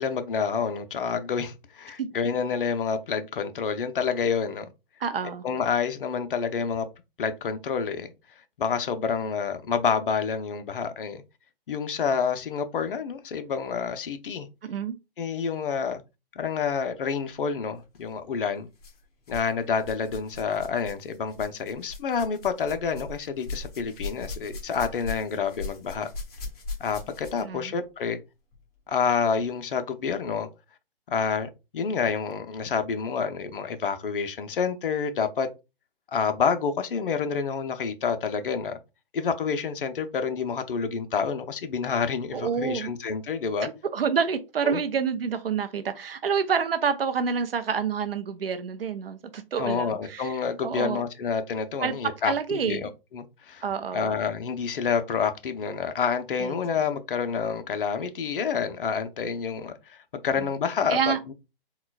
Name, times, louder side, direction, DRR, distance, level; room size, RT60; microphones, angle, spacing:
voice 1, 0.0-4.7 5.4-6.9 7.2-8.1 8.6-11.2 11.7-14.5 15.2-16.0 16.4-18.7 19.3-26.1 26.8-28.2 28.9-30.5 31.1-35.5 36.1-38.7 39.1-43.7 44.6-44.8 49.6-53.6 53.9-61.3, left 6 dB, 65° left, 0.6 m, -28 dB
voice 2, 5.0-5.4 14.6-14.9 27.4-27.7 42.3-42.9 43.6-50.3 50.6-51.0 51.8-52.9 53.6-54.1 56.4-56.6 60.9-61.2, right 6 dB, 75° right, 0.6 m, -28 dB
sound 1, 17.8-18.0 18.8-19.5 19.8-27.6 28.5-28.6 29.4-29.5, left 3 dB, 40° left, 1.3 m, -39 dB
3.8 x 2.3 x 2.2 m
figure-of-eight pair, 140°, 29 cm